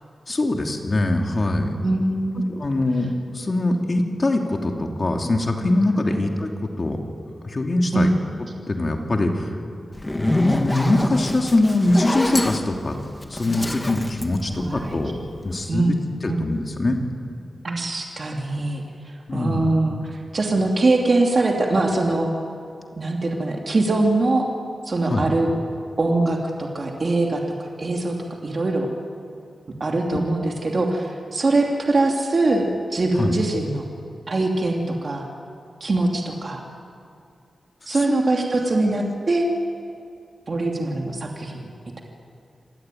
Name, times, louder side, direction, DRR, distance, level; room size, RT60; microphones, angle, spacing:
voice 1, 0.3-1.7 2.5-7.0 7.4-8.1 8.7-9.5 10.1-13.0 13.3-15.1 15.4-15.9 16.2-17.0 19.3-19.6 25.0-25.3 30.1-30.2 33.2-33.3 38.0-38.2, left 2 dB, 35° left, 2 dB, 2.8 m, -23 dB
voice 2, 1.8-2.5 7.9-8.1 14.5-15.0 15.7-15.9 16.3-16.4 17.6-18.8 19.3-22.3 23.0-24.5 24.9-25.5 26.0-27.4 27.8-28.1 28.4-28.9 29.8-32.6 32.9-33.8 34.3-35.2 35.8-36.6 37.9-39.5 40.5-41.7, right 2 dB, 45° right, 0 dB, 2.8 m, -22 dB
Zipper (clothing), 9.9-15.2, left 1 dB, 15° left, 1.8 m, -26 dB
27.5 x 19.0 x 9.3 m, 2.5 s
wide cardioid pair, 110°, 0 cm